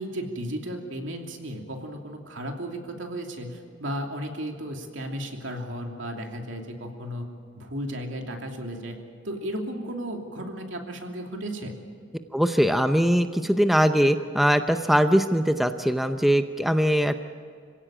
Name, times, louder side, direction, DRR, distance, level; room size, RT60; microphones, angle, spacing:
voice 1, 0.0-7.3 7.6-9.0 9.2-11.7, equal, 75° right, 2 dB, 2.9 m, -34 dB
voice 2, 12.3-17.2, equal, ahead, 8 dB, 0.6 m, -21 dB
26.5 x 16.5 x 8.9 m, 2.1 s
head